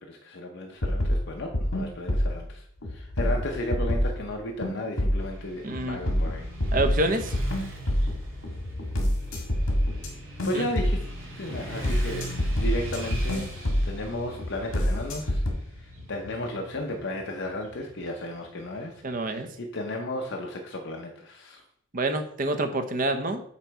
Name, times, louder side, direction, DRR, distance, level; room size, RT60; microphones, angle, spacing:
voice 1, 0.0-6.5 10.4-11.1 11.4-12.3 12.6-13.5 13.8-15.4 15.7-21.6, left 1 dB, 55° left, 1 dB, 0.6 m, -34 dB
sound 1, 0.8-2.4 2.8-4.2 4.6-5.3 5.7-10.1 10.4-11.1 11.5-14.0 14.4-15.5, equal, 75° left, 1.6 m, -27 dB
Motorcycle / Traffic noise roadway noise, 5.2-19.3, equal, 70° right, 2.2 m, -42 dB
voice 2, 5.6-6.0 6.7-7.4 10.5-10.7 19.0-19.5 21.9-23.4, right 2 dB, 40° right, 8 dB, 0.6 m, -27 dB
8.0 x 3.0 x 4.5 m, 0.66 s
head